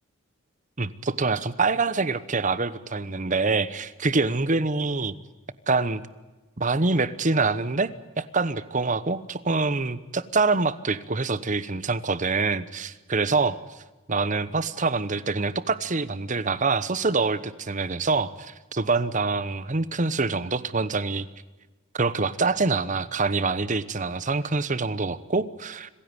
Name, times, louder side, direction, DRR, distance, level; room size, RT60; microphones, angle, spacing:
voice 1, 0.8-5.1 5.7-6.0 6.6-7.9 8.2-13.5 14.1-21.3 21.9-25.9, right 3 dB, 35° right, 16 dB, 1.0 m, -25 dB
26.0 x 16.0 x 9.7 m, 1.2 s
head